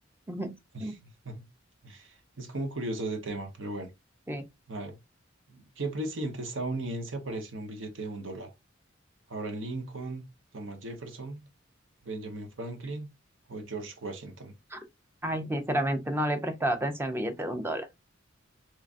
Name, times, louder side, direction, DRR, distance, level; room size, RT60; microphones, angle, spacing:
voice 1, 0.7-1.4 1.8-3.9 4.7-5.0 5.5-8.5 9.3-10.2 10.5-11.4 12.0-13.1 13.5-14.5, right 2 dB, 75° right, 1.0 m, -36 dB
voice 2, 15.2-17.9, right 1 dB, 10° right, 0.6 m, -30 dB
3.7 x 3.2 x 2.5 m
head